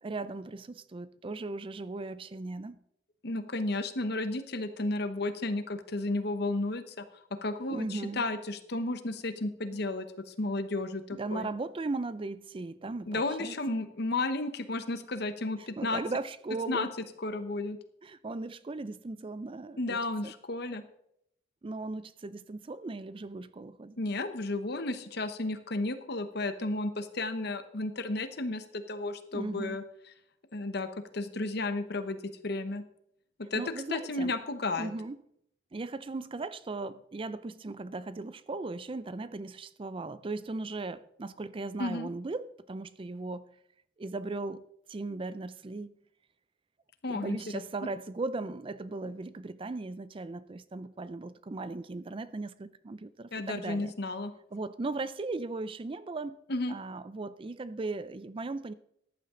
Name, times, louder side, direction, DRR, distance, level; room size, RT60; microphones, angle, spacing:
voice 1, 0.0-2.8 7.7-8.2 9.7-9.8 11.1-13.8 15.6-16.9 18.0-20.3 21.6-24.0 29.3-29.8 33.5-34.4 34.8-35.2 35.7-43.5 44.0-44.6 44.9-45.9 47.1-53.9 54.5-56.4 56.7-58.7, right 3 dB, 30° right, 0.4 m, -37 dB
voice 2, 3.2-7.0 7.4-11.5 13.1-16.0 16.7-16.9 17.2-17.8 19.8-20.8 24.0-29.8 30.5-30.9 31.1-32.2 32.4-32.8 33.4-33.6 33.9-34.9 41.8-42.1 47.0-47.6 53.3-54.3 56.5-56.8, left 2 dB, 60° left, 1.1 m, -33 dB
14.5 x 11.0 x 3.8 m
head